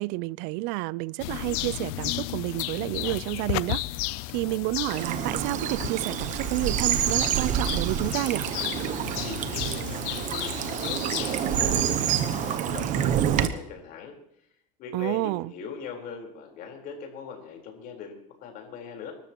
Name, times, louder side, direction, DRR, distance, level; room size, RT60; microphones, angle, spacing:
voice 1, 0.0-3.8 4.3-8.5 14.9-15.5, right 21 dB, 65° right, 0.5 m, -30 dB
sound 1, 1.2-12.6, left 17 dB, 80° left, 0.6 m, -34 dB
Bird vocalization bird call bird song / Stream, 4.8-13.5, right 10 dB, 40° right, 1.0 m, -27 dB
voice 2, 9.2-11.0 11.4-14.1 14.8-19.1, left 6 dB, 50° left, 4.3 m, -41 dB
26.0 x 13.0 x 3.0 m
cardioid pair, 150°, 19 cm